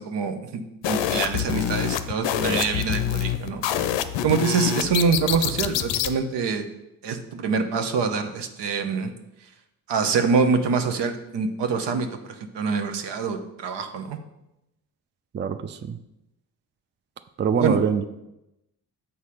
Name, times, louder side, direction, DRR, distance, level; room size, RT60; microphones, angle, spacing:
voice 1, 0.0-3.6 4.2-6.7 7.0-9.1 9.9-14.2 17.6-17.8, right 5 dB, 70° right, 7 dB, 0.9 m, -25 dB
sound 1, 0.8-6.1, left 10 dB, 75° left, 0.6 m, -26 dB
voice 2, 15.3-16.0 17.4-18.1, right 6 dB, 25° right, 10 dB, 0.4 m, -24 dB
7.2 x 4.1 x 4.9 m, 0.90 s
supercardioid pair, 50°, 43 cm